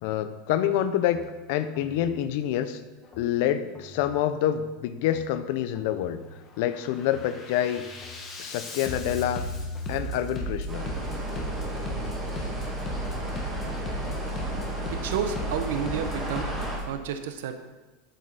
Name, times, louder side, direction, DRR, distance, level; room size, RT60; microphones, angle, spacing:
voice 1, 0.0-1.2 1.5-2.8 3.2-6.2 6.6-7.8 8.4-9.4 9.9-10.9, left 11 dB, 60° left, 12 dB, 0.8 m, -27 dB
Bass drum, 1.1-1.3 1.7-2.2 3.0-3.3 3.7-4.2 5.0-5.3 5.7-6.2 6.7-16.9, equal, 25° left, 1.6 m, -35 dB
sound 1, 10.7-16.8, right 1 dB, 15° right, 2.5 m, -35 dB
voice 2, 14.9-16.5 16.9-17.5, right 8 dB, 80° right, 8 dB, 1.0 m, -31 dB
13.0 x 7.8 x 4.2 m, 1.2 s
supercardioid pair, 160°, 0 cm